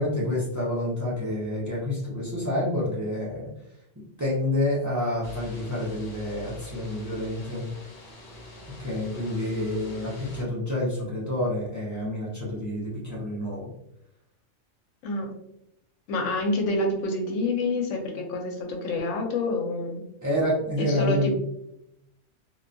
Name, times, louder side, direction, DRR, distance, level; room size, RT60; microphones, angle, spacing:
voice 1, 0.0-3.5 4.2-7.7 8.8-13.7 20.2-21.3, left 1 dB, 20° right, -7 dB, 0.5 m, -28 dB
sound 1, 5.2-10.4, equal, 60° left, 0.9 m, -44 dB
voice 2, 16.1-20.0 20.8-21.3, left 2 dB, 85° left, 2 dB, 0.9 m, -27 dB
2.3 x 2.2 x 2.5 m, 0.81 s
omnidirectional pair, 1.2 m